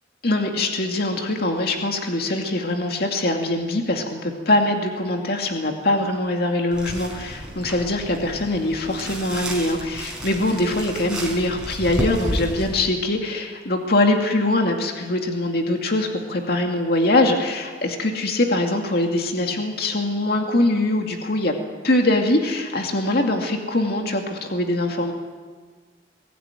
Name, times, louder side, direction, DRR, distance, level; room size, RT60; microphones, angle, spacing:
voice 1, 0.2-21.5 21.8-25.1, left 2 dB, 60° left, 3 dB, 2.4 m, -22 dB
sound 1, 6.7-12.9, equal, 5° right, 5.0 m, -32 dB
22.0 x 16.0 x 9.2 m, 1.5 s
head